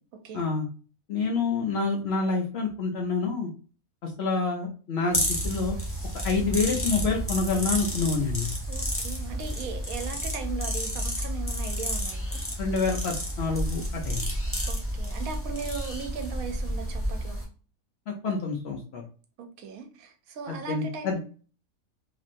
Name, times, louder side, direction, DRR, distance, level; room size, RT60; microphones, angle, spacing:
voice 1, 0.3-0.6 1.1-3.5 4.0-5.8 6.2-8.5 12.6-14.2 18.1-19.0 20.5-21.2, left 4 dB, 65° left, 0.7 m, -27 dB
sound 1, 5.1-17.4, equal, 15° left, 0.4 m, -31 dB
voice 2, 8.7-12.4 14.7-17.4 19.4-21.2, right 5 dB, 80° right, 1.0 m, -38 dB
3.0 x 2.5 x 2.5 m
omnidirectional pair, 1.5 m